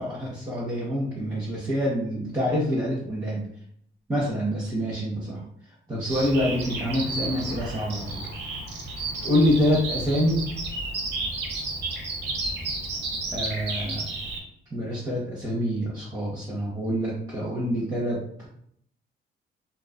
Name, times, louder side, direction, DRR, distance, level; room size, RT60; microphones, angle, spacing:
voice 1, 0.0-3.4 4.1-5.4 5.9-8.2 9.2-10.4 13.3-14.0 14.7-18.5, equal, 20° right, -7 dB, 0.7 m, -26 dB
Bird vocalization bird call bird song, 6.1-14.4, right 2 dB, 60° right, 0.7 m, -32 dB
2.3 x 2.3 x 2.2 m, 0.67 s
cardioid pair, 90°, 20 cm